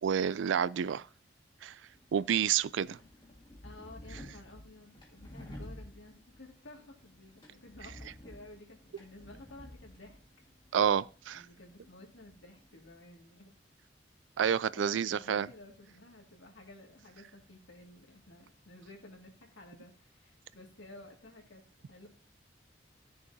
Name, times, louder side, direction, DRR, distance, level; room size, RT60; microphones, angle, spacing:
voice 1, 0.0-1.1 1.6-1.8 2.1-3.0 10.7-11.4 14.4-15.5, right 8 dB, 80° right, 0.3 m, -29 dB
sound 1, 1.8-12.9, left 1 dB, 25° left, 1.7 m, -52 dB
voice 2, 3.6-10.2 11.3-13.5 14.7-22.1, left 2 dB, 85° left, 2.1 m, -53 dB
15.0 x 6.7 x 2.7 m
head